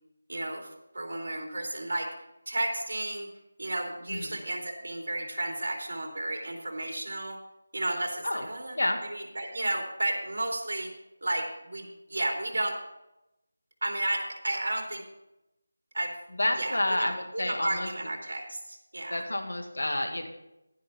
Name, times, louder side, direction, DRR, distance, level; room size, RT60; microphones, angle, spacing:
voice 1, 0.3-0.7 0.9-2.1 2.5-3.3 3.6-7.4 7.7-8.8 9.1-10.9 11.2-12.7 13.8-15.0 15.9-16.1 16.6-17.1 17.3-19.2, right 2 dB, 70° right, 1 dB, 3.1 m, -32 dB
voice 2, 16.3-17.9 19.1-20.3, left 1 dB, 90° left, 5 dB, 1.9 m, -29 dB
11.0 x 10.5 x 4.4 m, 0.92 s
figure-of-eight pair, 170°, 0 cm